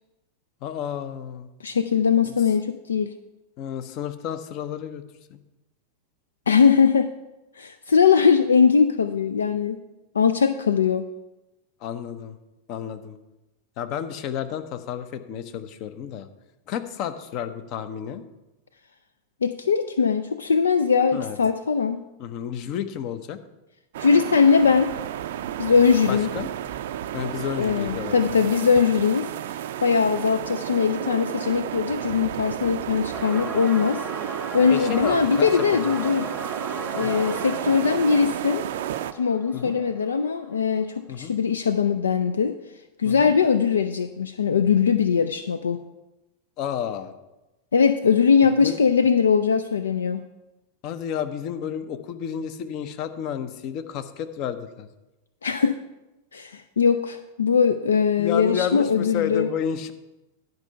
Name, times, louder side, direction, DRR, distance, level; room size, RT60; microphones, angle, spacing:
voice 1, 0.6-1.5 3.6-5.0 5.3-5.4 11.8-12.4 12.7-13.2 13.8-16.3 16.7-18.2 21.1-21.4 22.2-23.4 26.1-26.5 27.1-28.5 34.7-36.0 37.0-37.1 39.5-39.8 41.1-41.3 43.0-43.3 46.6-47.1 48.6-48.8 50.8-54.9 58.2-59.9, left 8 dB, 40° left, 10 dB, 0.8 m, -31 dB
voice 2, 1.6-3.1 6.5-7.1 7.6-9.8 10.1-11.1 19.4-22.0 24.0-24.9 25.6-26.3 27.6-29.3 29.8-34.0 34.5-36.2 36.9-38.6 39.1-42.5 43.0-45.8 47.7-50.2 55.4-55.7 56.3-59.5, left 6 dB, 70° left, 11 dB, 0.4 m, -21 dB
sound 1, 23.9-39.1, right 11 dB, 55° right, 0.4 m, -32 dB
sound 2, 33.1-40.6, right 1 dB, 5° left, 1.0 m, -37 dB
11.0 x 5.3 x 6.8 m, 1.0 s
figure-of-eight pair, 90°, 0 cm